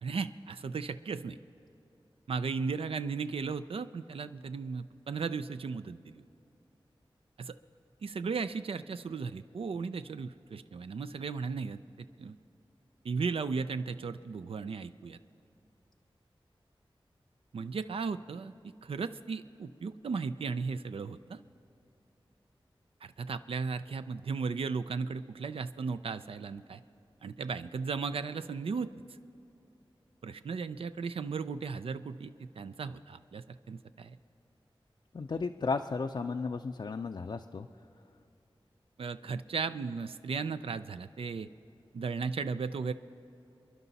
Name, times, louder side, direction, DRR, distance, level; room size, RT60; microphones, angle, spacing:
voice 1, 0.0-1.4 2.3-6.2 7.4-7.5 8.0-11.8 12.2-12.4 13.0-15.2 17.5-18.5 18.8-21.4 23.2-26.8 27.2-28.9 30.2-34.2 39.0-41.5 41.9-42.9, right 5 dB, 85° right, 11 dB, 0.4 m, -36 dB
voice 2, 35.1-37.7, left 4 dB, 55° left, 5 dB, 0.4 m, -34 dB
29.0 x 11.0 x 4.1 m, 2.6 s
wide cardioid pair, 75°, 9 cm